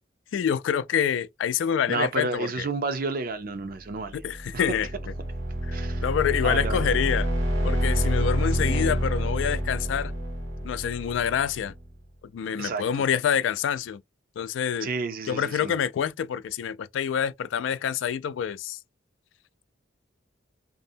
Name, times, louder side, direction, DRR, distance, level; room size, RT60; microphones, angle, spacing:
voice 1, 0.3-2.7 4.1-4.9 5.6-5.8 6.0-7.3 7.6-10.1 10.6-11.7 12.3-14.0 14.4-14.9 15.3-18.8, left 8 dB, 80° left, 0.3 m, -27 dB
voice 2, 1.9-4.2 5.7-6.0 6.4-6.8 12.6-12.8 14.8-15.7, right 4 dB, 50° right, 0.5 m, -30 dB
sound 1, 4.1-11.8, equal, 75° right, 1.3 m, -28 dB
2.6 x 2.0 x 2.6 m
head